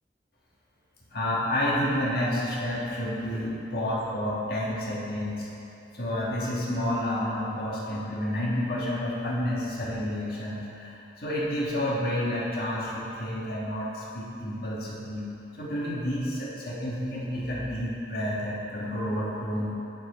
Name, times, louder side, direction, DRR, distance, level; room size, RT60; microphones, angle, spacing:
voice 1, 1.1-5.5 5.9-15.3 15.6-19.7, left 1 dB, 60° left, -6 dB, 1.5 m, -30 dB
9.2 x 4.5 x 4.3 m, 2.9 s
head